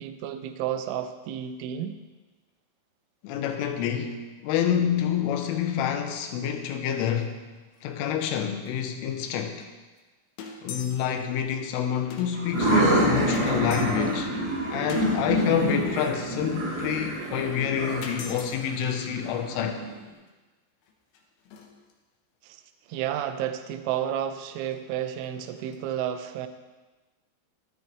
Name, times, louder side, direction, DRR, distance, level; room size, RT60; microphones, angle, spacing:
voice 1, 0.0-2.0 22.4-22.6 22.9-26.5, right 10 dB, 80° right, 9 dB, 3.0 m, -31 dB
voice 2, 3.2-7.4 7.8-9.7 10.6-14.3 14.7-19.8, left 9 dB, 90° left, 5 dB, 3.4 m, -28 dB
sound 1, 7.1-7.4 7.7-7.8 8.1-8.2 8.7-8.8 9.6-9.7 10.0-10.1 10.4-11.2 11.5-11.6 12.1-12.7 13.3-14.2 14.9-15.1 17.3-17.4 18.0-18.5 20.3-20.4 20.8-21.9 22.9-23.2 24.7-24.8 25.2-25.3 25.6-25.8, left 5 dB, 70° left, 3.0 m, -42 dB
sound 2, 12.3-19.9, right 1 dB, 40° right, 3.3 m, -27 dB
13.0 x 12.0 x 3.3 m, 1.2 s
omnidirectional pair, 5.7 m